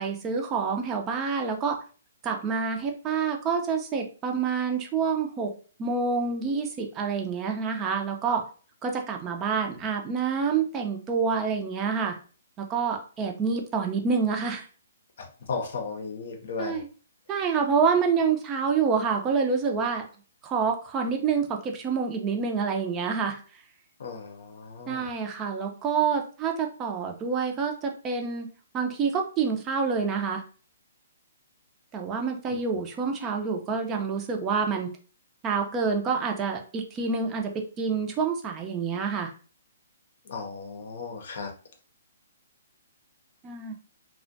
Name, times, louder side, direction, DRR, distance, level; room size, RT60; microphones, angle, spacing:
voice 1, 0.0-1.8 2.2-5.5 5.8-8.4 8.8-12.2 12.6-14.6 16.6-16.9 17.3-20.0 20.4-23.4 24.9-28.5 28.7-30.4 31.9-34.9 35.4-39.3 43.4-43.7, right 5 dB, 20° right, 3 dB, 0.5 m, -27 dB
voice 2, 15.2-16.8 24.0-25.1 32.5-32.6 40.3-41.5, left 4 dB, 65° left, 4 dB, 0.6 m, -35 dB
2.4 x 2.1 x 2.6 m, 0.38 s
hypercardioid pair, 145°, 0 cm